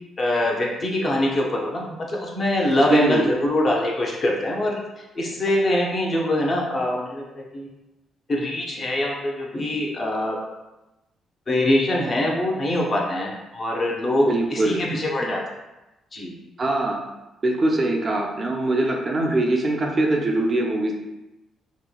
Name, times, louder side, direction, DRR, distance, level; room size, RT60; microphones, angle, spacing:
voice 1, 0.2-4.8 5.1-7.7 8.3-10.4 11.5-15.4 16.1-16.3, left 1 dB, 40° left, -2 dB, 0.6 m, -23 dB
voice 2, 2.9-3.3 14.2-14.8 16.6-17.0 17.4-20.9, right 2 dB, 35° right, 0 dB, 0.4 m, -22 dB
2.9 x 2.1 x 2.3 m, 1.0 s
cardioid pair, 90°, 0 cm